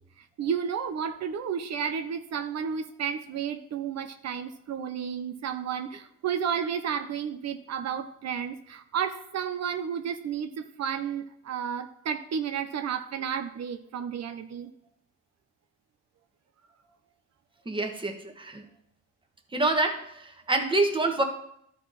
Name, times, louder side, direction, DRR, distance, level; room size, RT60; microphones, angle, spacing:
voice 1, 0.2-14.7, right 7 dB, 60° right, 8 dB, 0.7 m, -32 dB
voice 2, 17.6-18.6 19.5-21.2, right 2 dB, 15° right, 4 dB, 1.4 m, -27 dB
12.5 x 4.6 x 4.1 m, 0.71 s
cardioid pair, 90°, 30 cm